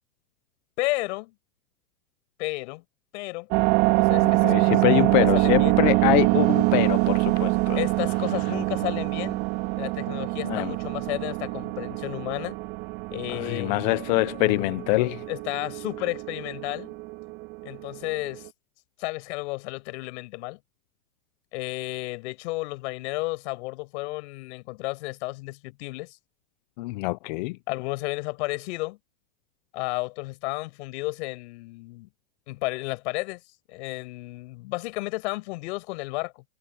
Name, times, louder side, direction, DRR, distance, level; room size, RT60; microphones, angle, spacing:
voice 1, 0.8-1.3 2.4-2.8 3.1-3.5 4.0-5.8 7.8-9.4 9.7-12.6 13.1-13.8 15.3-17.0 17.6-18.5 19.0-20.6 21.5-26.2 27.7-29.0 29.7-32.1 32.5-33.4 33.7-36.4, left 23 dB, 50° left, 6.2 m, -32 dB
sound 1, 3.5-18.5, right 24 dB, 40° right, 2.5 m, -25 dB
voice 2, 4.2-7.8 10.4-10.7 13.3-15.2 26.8-27.6, left 22 dB, 35° left, 0.5 m, -25 dB
supercardioid pair, 145°, 42 cm